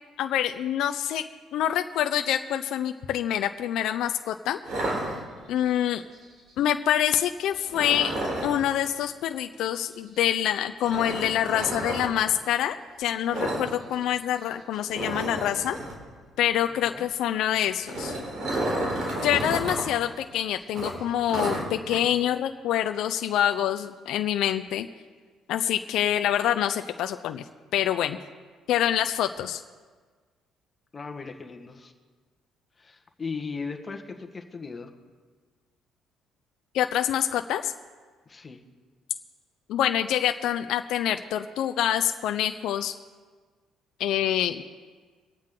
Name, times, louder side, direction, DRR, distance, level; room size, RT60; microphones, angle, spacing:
voice 1, 0.2-1.3 1.5-4.6 5.5-6.0 6.6-8.1 8.4-15.8 16.4-18.2 19.2-24.9 25.5-27.4 27.7-28.2 28.7-29.6 36.7-37.7 39.7-42.9 44.0-44.6, left 11 dB, 75° left, 7 dB, 0.6 m, -26 dB
sound 1, 4.6-5.7 7.7-8.6 10.8-12.1 13.3-13.7 13.9-14.1 14.4-14.5 14.9-16.0 17.6-19.8 20.2-20.3 20.7-22.0, right 1 dB, 60° right, 3.9 m, -31 dB
voice 2, 16.7-17.1 30.9-31.9 32.8-34.9 38.2-38.6, left 4 dB, 30° left, 4 dB, 1.5 m, -37 dB
24.0 x 8.8 x 3.8 m, 1.5 s
cardioid pair, 100°, 0 cm